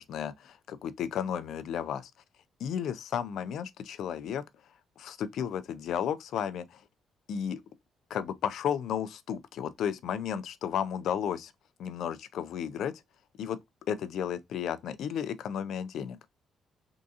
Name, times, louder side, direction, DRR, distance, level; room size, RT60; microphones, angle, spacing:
voice 1, 0.0-2.1 2.6-4.4 5.0-6.8 7.3-7.6 8.1-11.5 11.8-12.9 13.4-13.6 13.9-16.2, left 8 dB, 75° left, 0.4 m, -33 dB
3.6 x 2.6 x 2.4 m
cardioid pair, 90°, 0 cm